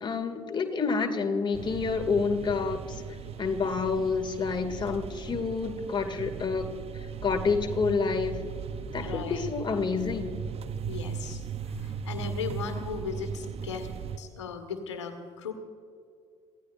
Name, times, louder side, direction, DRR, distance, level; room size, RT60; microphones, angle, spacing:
voice 1, 0.0-3.0 3.4-6.7 7.2-8.4 8.9-10.4, left 5 dB, 30° left, 3 dB, 2.3 m, -28 dB
sound 1, 1.5-14.2, right 7 dB, 40° right, 0.9 m, -37 dB
voice 2, 9.0-9.5 10.8-13.9 14.2-15.5, left 6 dB, 80° left, 7 dB, 1.6 m, -37 dB
26.0 x 17.0 x 2.6 m, 2.3 s
figure-of-eight pair, 55°, 15 cm